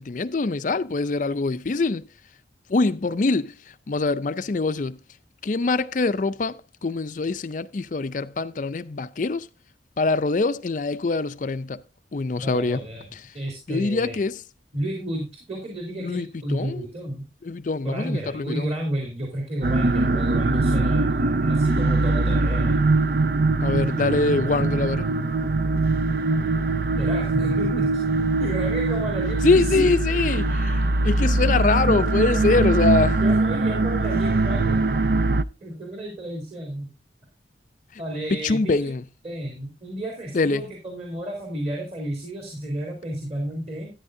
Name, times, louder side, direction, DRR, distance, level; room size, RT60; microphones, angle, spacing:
voice 1, 0.0-2.0 2.7-3.5 3.9-5.0 5.4-9.5 10.0-11.8 12.1-12.8 13.1-13.2 13.7-14.4 16.0-16.8 17.4-18.7 23.6-25.1 29.4-30.4 31.0-33.2 38.3-39.0 40.3-40.6, left 3 dB, 45° left, 0.4 m, -24 dB
voice 2, 12.4-13.1 13.3-14.1 14.7-17.2 17.8-22.8 27.0-28.0 28.4-30.0 33.2-34.9 35.6-36.9 38.0-38.9 39.2-43.9, right 1 dB, 35° right, 3.3 m, -31 dB
sound 1, 19.6-35.4, right 2 dB, 50° right, 0.5 m, -22 dB
13.0 x 10.0 x 2.6 m
head